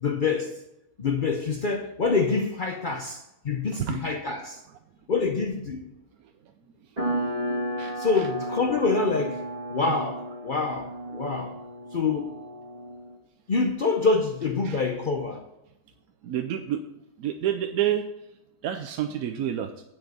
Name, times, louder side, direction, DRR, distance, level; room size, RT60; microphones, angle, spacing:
voice 1, 0.0-0.6 1.0-4.6 5.1-5.8 8.0-11.6 11.9-12.3 13.5-15.4, left 4 dB, 50° left, 0.6 m, -26 dB
sound 1, 7.0-13.2, right 1 dB, 25° right, 1.7 m, -33 dB
voice 2, 16.2-16.8 17.2-18.0 18.6-19.7, right 11 dB, 70° right, 1.1 m, -28 dB
9.5 x 5.2 x 7.8 m
omnidirectional pair, 1.7 m